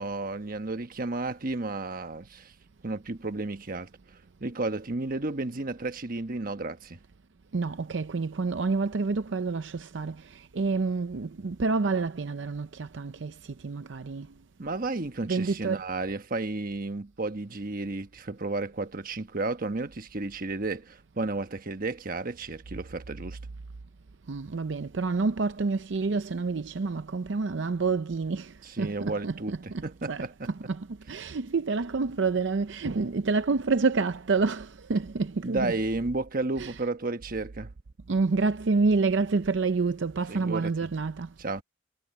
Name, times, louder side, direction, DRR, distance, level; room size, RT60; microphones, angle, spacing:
voice 1, 0.0-2.5 2.8-3.9 4.4-7.0 14.6-23.4 28.6-30.5 35.4-37.7 40.3-40.7 41.4-41.6, right 2 dB, 50° right, 1.2 m, -32 dB
voice 2, 7.5-14.3 15.2-15.8 24.3-35.8 36.6-36.9 38.1-41.3, right 4 dB, 75° right, 0.6 m, -28 dB
head